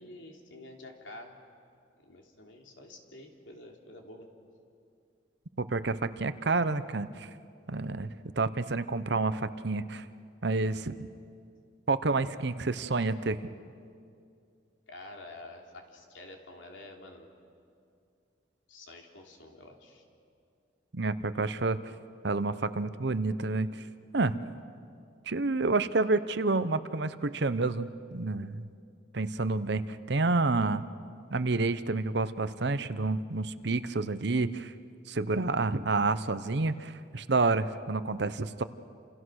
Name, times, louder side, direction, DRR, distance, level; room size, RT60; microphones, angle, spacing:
voice 1, 0.0-1.4 2.0-4.3 14.9-17.3 18.7-20.0, left 2 dB, 80° left, 2 dB, 3.2 m, -48 dB
voice 2, 5.6-7.3 7.7-10.0 10.4-10.9 11.9-13.4 20.9-21.8 22.2-23.7 24.1-24.3 25.3-28.7 29.1-29.8 30.1-30.9 31.3-34.7 35.1-38.6, right 3 dB, 60° right, 13 dB, 0.9 m, -29 dB
29.0 x 28.0 x 6.4 m, 2.4 s
head